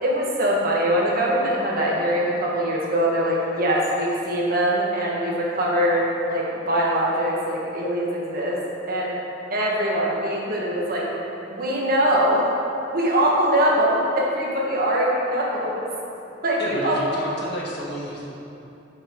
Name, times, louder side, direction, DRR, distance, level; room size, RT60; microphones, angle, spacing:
voice 1, 0.0-8.6 8.9-9.2 9.5-11.0 11.5-12.4 12.9-15.8 16.4-17.0, equal, 50° right, -3 dB, 1.5 m, -22 dB
voice 2, 16.6-18.3, equal, 55° left, -4 dB, 1.6 m, -30 dB
10.5 x 6.4 x 3.8 m, 2.8 s
head